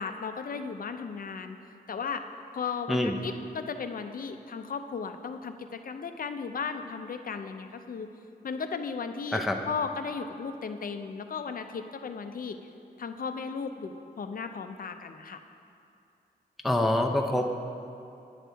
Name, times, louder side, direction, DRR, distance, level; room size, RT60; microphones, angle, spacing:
voice 1, 0.0-1.6 1.9-2.2 2.5-8.1 8.4-12.6 13.0-15.4, left 5 dB, 55° left, 8 dB, 0.5 m, -35 dB
voice 2, 16.6-17.6, left 1 dB, ahead, 2 dB, 0.5 m, -25 dB
9.1 x 6.1 x 3.4 m, 2.6 s
wide cardioid pair, 75°, 17 cm